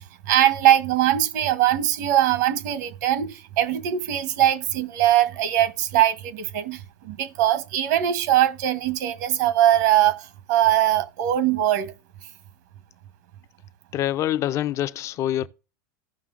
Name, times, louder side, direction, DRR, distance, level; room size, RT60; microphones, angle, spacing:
voice 1, 0.0-11.9, right 12 dB, 70° right, 0.9 m, -21 dB
voice 2, 13.9-15.5, left 12 dB, 30° left, 0.4 m, -25 dB
15.0 x 5.6 x 2.5 m
supercardioid pair, 135°, 10 cm